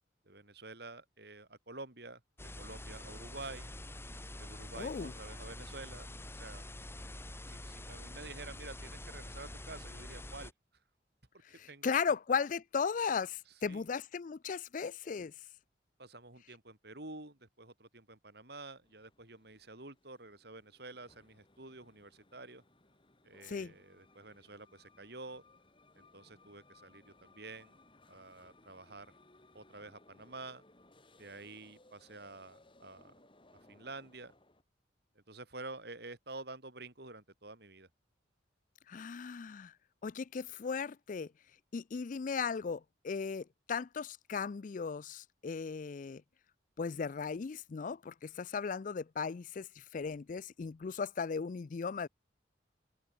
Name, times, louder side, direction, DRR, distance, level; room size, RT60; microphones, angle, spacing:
voice 1, 0.2-2.2 2.6-3.7 4.4-6.6 7.5-10.5 11.7-12.1 13.6-13.8 16.0-22.6 23.2-25.4 25.9-27.8 28.1-29.1 29.5-30.6 31.2-33.1 33.7-34.3 35.1-37.9, right 3 dB, 60° right, 4.3 m, -49 dB
sound 1, 2.4-10.5, left 1 dB, 15° left, 2.4 m, -46 dB
voice 2, 4.8-5.1 11.5-15.3 23.4-23.7 38.9-39.7 40.0-41.3 41.7-46.2 46.8-52.1, left 5 dB, 45° left, 0.4 m, -36 dB
sound 2, 18.8-34.6, left 2 dB, 30° left, 5.6 m, -64 dB
open air
head